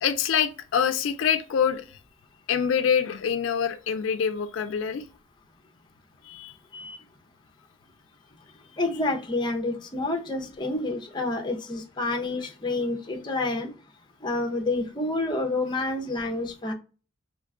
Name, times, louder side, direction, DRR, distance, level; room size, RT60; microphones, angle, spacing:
voice 1, 0.0-2.0 2.5-5.0 6.2-6.6, left 7 dB, 80° left, 0.4 m, -25 dB
voice 2, 8.8-13.7 14.2-16.7, left 2 dB, 25° left, 0.6 m, -28 dB
3.1 x 2.2 x 3.5 m
head